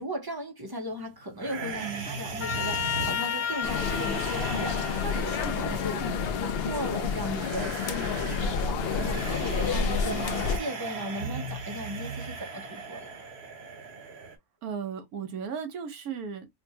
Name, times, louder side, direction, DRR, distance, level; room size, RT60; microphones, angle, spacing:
voice 1, 0.0-13.1, equal, 30° right, 0.4 m, -37 dB
sound 1, 1.4-14.4, right 3 dB, 50° right, 0.9 m, -38 dB
Trumpet, 2.4-7.0, left 9 dB, 80° left, 1.1 m, -34 dB
sound 2, 3.6-10.6, left 6 dB, 65° left, 0.6 m, -29 dB
voice 2, 5.2-6.1 10.1-10.5 14.6-16.5, right 7 dB, 90° right, 1.4 m, -36 dB
4.3 x 2.2 x 2.8 m
omnidirectional pair, 1.5 m